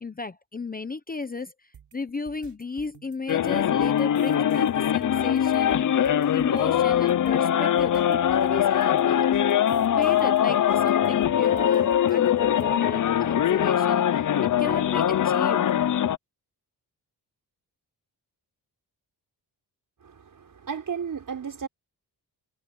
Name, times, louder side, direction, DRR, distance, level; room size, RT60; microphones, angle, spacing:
voice 1, 0.0-9.3 10.0-15.6, left 4 dB, 20° left, 0.8 m, -34 dB
sound 1, 1.7-12.6, right 8 dB, 90° right, 6.2 m, -52 dB
sound 2, 3.3-16.2, left 10 dB, 50° left, 0.6 m, -22 dB
voice 2, 20.0-21.7, right 6 dB, 50° right, 5.5 m, -34 dB
wide cardioid pair, 145°, 40 cm